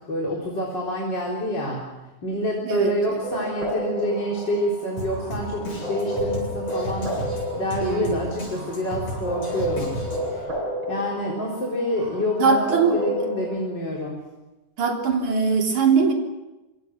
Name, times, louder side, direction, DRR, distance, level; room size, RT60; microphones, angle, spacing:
voice 1, 0.1-1.8 2.2-7.1 7.6-10.0 10.3-10.5 10.9-14.2, left 1 dB, 35° left, -3 dB, 4.5 m, -27 dB
voice 2, 2.6-3.2 7.8-8.2 12.4-13.0 14.8-16.1, right 5 dB, 65° right, 1 dB, 4.7 m, -21 dB
sound 1, 3.2-13.5, equal, 35° right, 7.7 m, -31 dB
Drum kit, 5.0-10.4, equal, 60° left, 9.3 m, -34 dB
26.5 x 25.5 x 6.1 m, 1.0 s
omnidirectional pair, 3.7 m